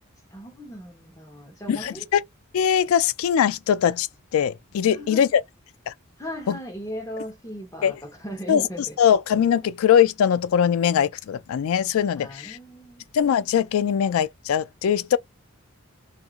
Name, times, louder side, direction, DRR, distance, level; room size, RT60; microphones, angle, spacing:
voice 1, 0.3-2.1 4.8-5.3 6.2-9.0 12.2-13.1, equal, 15° left, 1.0 m, -37 dB
voice 2, 1.7-2.2 2.5-4.1 4.3-5.4 5.9-6.0 6.5-6.6 7.8-7.9 8.5-8.7 9.0-12.6 13.1-15.2, left 8 dB, 85° left, 0.3 m, -21 dB
2.7 x 2.6 x 2.4 m
head